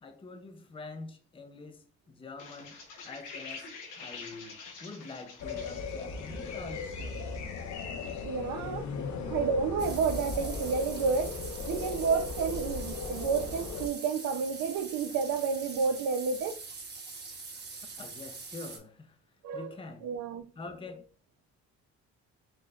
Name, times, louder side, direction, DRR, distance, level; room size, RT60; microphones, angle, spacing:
voice 1, 0.0-2.8 3.0-3.7 3.9-7.3 9.0-9.1 18.0-19.2 19.5-20.1 20.6-21.1, left 3 dB, 20° left, 0.6 m, -45 dB
sound 1, 2.4-8.2, left 4 dB, 90° left, 1.0 m, -47 dB
sound 2, 5.4-13.9, left 4 dB, 70° left, 0.8 m, -37 dB
voice 2, 8.2-8.9 9.3-11.3 11.7-16.6 19.4-19.8 20.0-20.4, right 5 dB, 80° right, 0.7 m, -30 dB
sound 3, 9.8-18.8, right 4 dB, 35° right, 1.1 m, -44 dB
4.5 x 3.0 x 2.4 m
cardioid pair, 90°, 30 cm